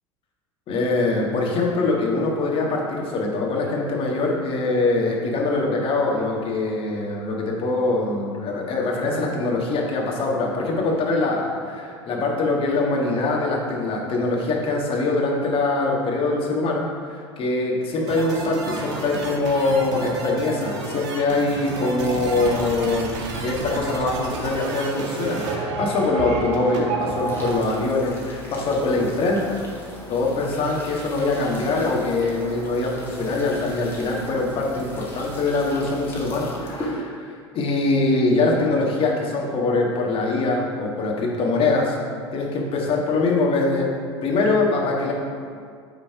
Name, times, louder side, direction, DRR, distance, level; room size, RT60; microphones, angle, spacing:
voice 1, 0.7-29.6 30.1-42.0 42.3-45.1, left 3 dB, 40° left, -1 dB, 1.5 m, -23 dB
sound 1, 18.1-27.5, right 3 dB, 55° right, 1.3 m, -30 dB
sound 2, 27.0-37.0, equal, 15° left, 1.8 m, -38 dB
8.8 x 3.9 x 4.6 m, 2.2 s
figure-of-eight pair, 75°, 15 cm